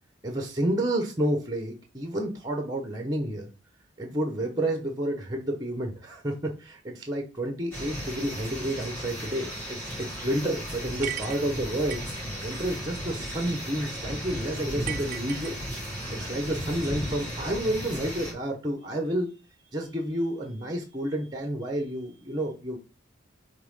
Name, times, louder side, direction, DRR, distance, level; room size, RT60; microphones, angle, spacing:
voice 1, 0.2-3.5 4.0-12.0 12.4-15.6 15.8-19.3 19.7-22.8, right 1 dB, 20° right, 4 dB, 1.1 m, -30 dB
sound 1, 7.7-18.3, equal, 10° left, 3.4 m, -35 dB
sound 2, 11.0-12.2 14.9-16.0, right 12 dB, 45° right, 0.3 m, -37 dB
5.7 x 3.7 x 5.6 m, 0.31 s
head